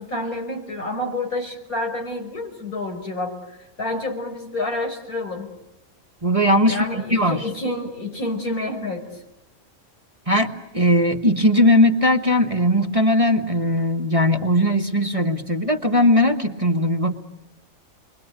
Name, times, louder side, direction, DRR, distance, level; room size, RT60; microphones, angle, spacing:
voice 1, 0.0-5.5 6.7-9.2, left 2 dB, 80° left, 3 dB, 6.4 m, -29 dB
voice 2, 6.2-6.8 7.1-7.4 10.3-17.1, left 1 dB, 25° right, 4 dB, 1.4 m, -19 dB
29.5 x 23.0 x 8.3 m, 0.90 s
omnidirectional pair, 1.5 m